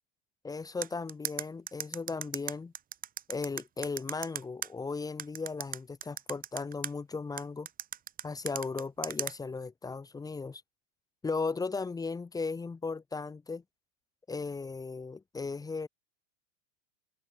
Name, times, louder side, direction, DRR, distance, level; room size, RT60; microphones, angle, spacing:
voice 1, 0.4-2.7 3.3-7.7 8.2-10.6 11.2-13.6 14.3-15.9, left 4 dB, 10° left, 2.8 m, -36 dB
sound 1, 0.8-4.7 5.2-6.9 7.4-9.3, right 9 dB, 20° right, 6.5 m, -36 dB
supercardioid pair, 160°, 38 cm